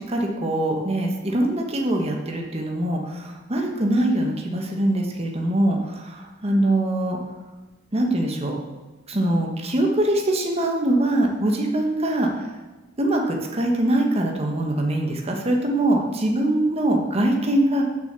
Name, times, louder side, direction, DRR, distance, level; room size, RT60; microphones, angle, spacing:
voice 1, 0.0-7.2 7.9-8.5 9.1-12.3 13.0-17.8, right 1 dB, 35° right, 1 dB, 1.3 m, -23 dB
6.7 x 6.3 x 6.8 m, 1.2 s
head